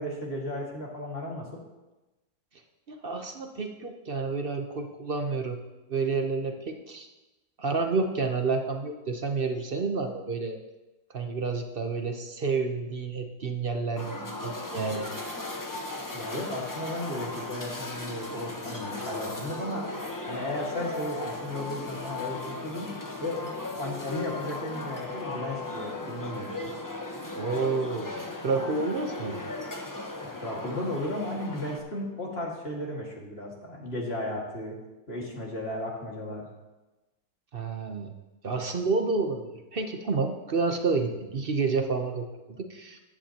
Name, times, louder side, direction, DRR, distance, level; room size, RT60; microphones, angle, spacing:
voice 1, 0.0-1.6 16.1-19.8 20.3-22.9 23.2-26.5 30.3-34.8 35.1-36.5, left 1 dB, 35° left, -2 dB, 2.2 m, -35 dB
voice 2, 2.9-5.6 5.9-7.1 7.6-10.6 11.1-15.1 27.3-29.4 37.5-38.1 38.4-43.0, right 4 dB, 45° right, 5 dB, 0.8 m, -29 dB
sound 1, 14.0-31.8, left 2 dB, 15° left, 0.7 m, -37 dB
15.0 x 11.0 x 2.9 m, 1.1 s
omnidirectional pair, 1.9 m